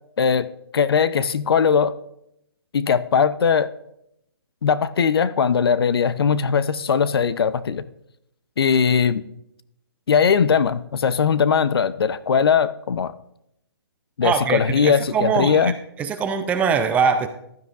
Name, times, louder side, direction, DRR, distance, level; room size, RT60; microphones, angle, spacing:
voice 1, 0.2-0.5 0.7-1.9 2.7-3.7 4.6-7.8 8.6-9.2 10.1-13.1 14.2-15.7, left 6 dB, 70° left, 15 dB, 0.7 m, -19 dB
voice 2, 14.2-15.7 16.0-17.3, right 6 dB, 10° right, 9 dB, 0.5 m, -22 dB
15.5 x 12.0 x 2.5 m, 0.77 s
hypercardioid pair, 150°, 13 cm